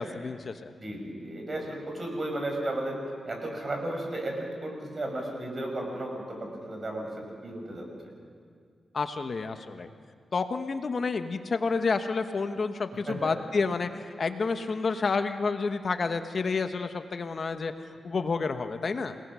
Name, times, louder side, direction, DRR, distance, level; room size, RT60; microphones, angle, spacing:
voice 1, 0.0-0.7 8.9-9.9 10.3-17.7 18.0-19.2, left 4 dB, 55° left, 8 dB, 1.1 m, -29 dB
voice 2, 0.8-3.0 3.2-7.9 13.1-13.2, right 1 dB, 40° right, 1 dB, 6.2 m, -34 dB
28.0 x 19.0 x 6.3 m, 2.2 s
cardioid pair, 80°, 0 cm